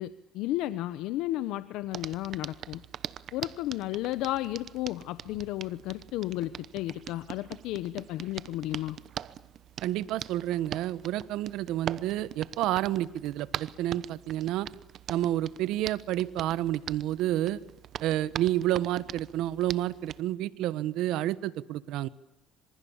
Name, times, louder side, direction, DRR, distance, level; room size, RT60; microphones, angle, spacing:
voice 1, 0.0-2.8 3.3-9.0, left 15 dB, 80° left, 14 dB, 1.0 m, -33 dB
Hands, 1.9-20.2, right 10 dB, 55° right, 0.9 m, -42 dB
voice 2, 9.8-14.7 15.1-17.6 18.0-22.1, right 14 dB, 75° right, 16 dB, 1.3 m, -29 dB
27.5 x 26.5 x 7.3 m, 0.89 s
cardioid pair, 125°, 0 cm